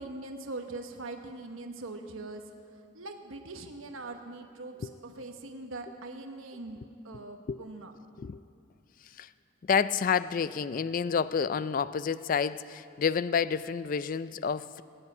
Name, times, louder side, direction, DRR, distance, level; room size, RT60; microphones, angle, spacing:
voice 1, 0.0-2.4 2.9-6.8 7.0-7.9, right 2 dB, 80° right, 5 dB, 1.1 m, -42 dB
voice 2, 9.7-14.8, left 6 dB, 40° left, 16 dB, 0.3 m, -29 dB
19.5 x 8.1 x 9.3 m, 2.5 s
head